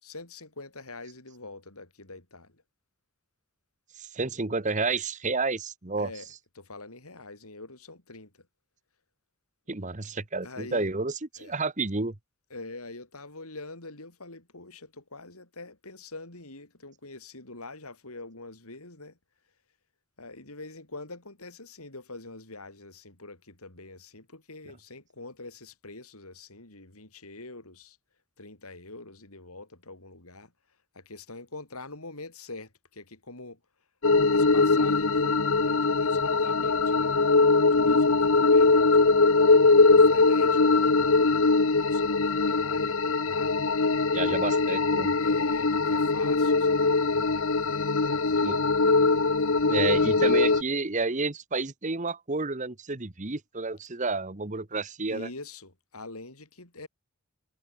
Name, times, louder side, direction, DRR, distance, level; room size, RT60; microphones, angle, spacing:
voice 1, 0.0-2.6 6.0-6.3 6.6-8.5 10.4-10.9 11.4-11.5 12.5-19.2 20.2-28.0 28.4-30.5 30.9-33.6 34.2-37.2 37.7-39.3 39.8-44.5 45.2-48.5 55.1-56.9, left 2 dB, 80° left, 5.4 m, -45 dB
voice 2, 4.0-6.1 9.7-12.1 44.1-45.1 48.4-48.6 49.7-55.3, right 3 dB, 35° right, 1.2 m, -30 dB
sound 1, 34.0-50.6, left 3 dB, 65° left, 1.1 m, -22 dB
head